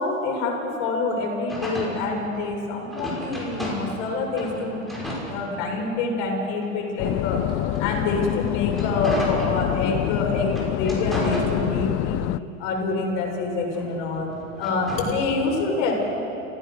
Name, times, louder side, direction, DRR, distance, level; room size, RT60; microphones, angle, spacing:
voice 1, 0.0-4.8 5.3-7.4 7.8-12.2 12.6-14.3 14.6-15.9, left 3 dB, 50° left, 0 dB, 6.9 m, -26 dB
sound 1, 1.5-4.1 4.3-6.0 6.6-10.0 10.5-12.1 12.5-15.2, equal, ahead, 6.7 m, -34 dB
sound 2, 7.0-12.4, left 17 dB, 35° left, 0.4 m, -26 dB
30.0 x 16.5 x 6.7 m, 2.9 s
hypercardioid pair, 105°, 40 cm